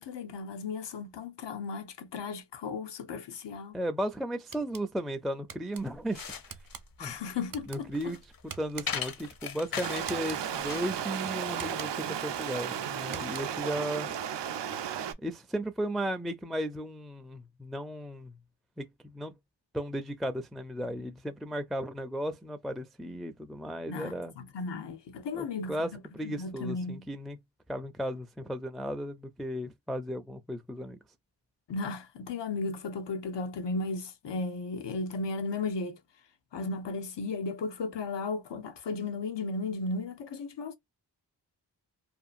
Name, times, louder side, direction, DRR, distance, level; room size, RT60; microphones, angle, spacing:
voice 1, 0.0-3.8 7.0-7.9 23.9-25.7 26.2-27.0 31.7-36.0 36.5-40.7, left 3 dB, 90° left, 0.7 m, -35 dB
voice 2, 3.7-6.4 7.0-7.2 7.7-8.2 8.4-14.1 15.2-18.3 18.8-19.3 19.7-24.3 25.3-27.4 27.7-31.0, equal, ahead, 0.4 m, -35 dB
sound 1, 4.5-4.9 5.5-5.8 6.5-6.8 7.5-7.8 8.5-9.1 10.0-10.4 11.5-12.1 13.0-13.6, right 7 dB, 55° right, 0.7 m, -45 dB
sound 2, 5.8-10.9, left 7 dB, 55° left, 0.7 m, -39 dB
Stream, 9.8-15.1, right 9 dB, 90° right, 0.5 m, -34 dB
2.7 x 2.3 x 2.4 m
cardioid pair, 60°, 41 cm